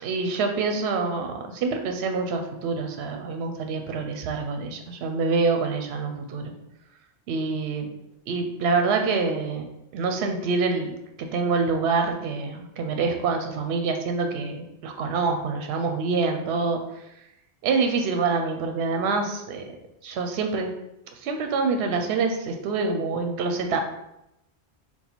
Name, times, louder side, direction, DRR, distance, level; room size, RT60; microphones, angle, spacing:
voice 1, 0.0-6.5 7.3-7.9 8.3-9.7 9.9-16.8 17.6-19.7 20.0-20.7 21.2-23.8, right 4 dB, 75° right, 4 dB, 0.8 m, -26 dB
3.9 x 2.2 x 4.3 m, 0.84 s
omnidirectional pair, 1.1 m